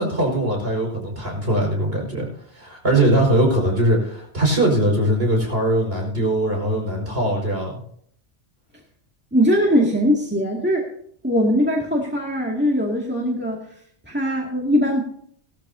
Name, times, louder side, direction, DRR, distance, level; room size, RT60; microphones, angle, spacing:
voice 1, 0.0-2.3 2.5-7.7, right 1 dB, 55° right, 0 dB, 5.4 m, -21 dB
voice 2, 9.3-10.9 11.2-13.6 14.1-15.0, equal, 10° right, -2 dB, 2.2 m, -20 dB
18.0 x 13.5 x 2.8 m, 0.62 s
omnidirectional pair, 1.2 m